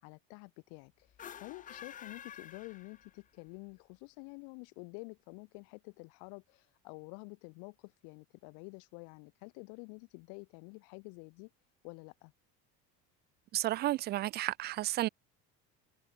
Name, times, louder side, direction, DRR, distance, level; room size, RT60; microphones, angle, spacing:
voice 1, 0.0-1.1 1.4-11.5 11.8-12.3, left 37 dB, 90° left, 4.4 m, -49 dB
sound 1, 1.1-3.4, left 9 dB, 25° left, 2.0 m, -49 dB
voice 2, 13.5-15.1, right 15 dB, 35° right, 0.4 m, -32 dB
cardioid pair, 180°, 30 cm